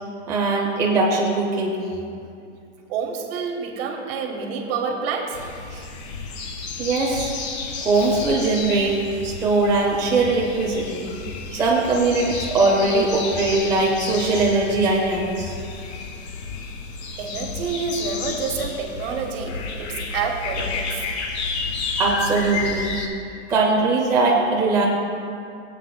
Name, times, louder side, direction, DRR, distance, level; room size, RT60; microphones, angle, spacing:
voice 1, 0.3-1.8 5.7-5.8 6.8-7.3 7.8-9.0 9.2-11.1 11.5-15.5 22.0-23.0 23.5-24.8, right 3 dB, 10° right, -3 dB, 0.4 m, -21 dB
voice 2, 2.9-5.4 17.2-21.1, right 5 dB, 55° right, 2 dB, 1.4 m, -28 dB
sound 1, 5.3-23.1, left 4 dB, 60° left, 1.3 m, -31 dB
18.0 x 8.3 x 2.2 m, 2.5 s
supercardioid pair, 155°, 37 cm